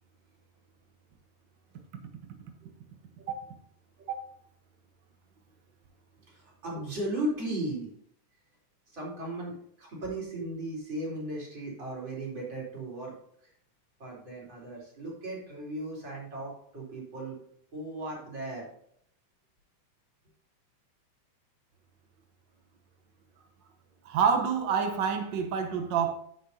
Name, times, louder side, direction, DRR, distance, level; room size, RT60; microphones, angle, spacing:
voice 1, 6.3-7.9 8.9-13.1 13.4-13.5 14.0-17.4 17.7-18.7, right 1 dB, 35° right, 4.5 m, -36 dB
voice 2, 24.0-26.1, right 6 dB, 85° right, 1.0 m, -27 dB
10.5 x 9.6 x 2.8 m
omnidirectional pair, 3.5 m